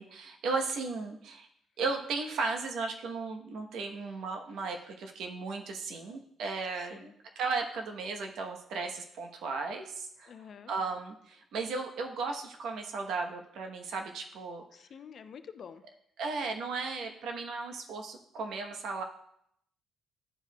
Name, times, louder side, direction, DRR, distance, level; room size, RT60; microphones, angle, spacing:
voice 1, 0.0-1.5 1.8-10.3 10.7-14.6 16.2-19.0, right 4 dB, 80° right, 4 dB, 0.9 m, -35 dB
voice 2, 6.8-7.1 10.3-10.7 14.7-15.8, left 7 dB, 55° left, 10 dB, 0.5 m, -48 dB
11.0 x 4.7 x 2.2 m, 0.72 s
cardioid pair, 90°, 0 cm